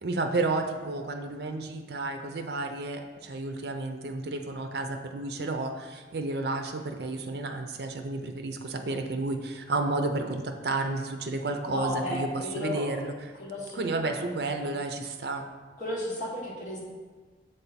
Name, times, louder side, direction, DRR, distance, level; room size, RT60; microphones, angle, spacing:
voice 1, 0.0-12.3 12.5-13.1 13.8-15.4, right 2 dB, 65° right, 5 dB, 0.5 m, -31 dB
voice 2, 11.7-13.0 13.3-14.6 15.8-16.8, left 1 dB, 45° left, -5 dB, 1.6 m, -34 dB
7.3 x 3.4 x 4.2 m, 1.4 s
head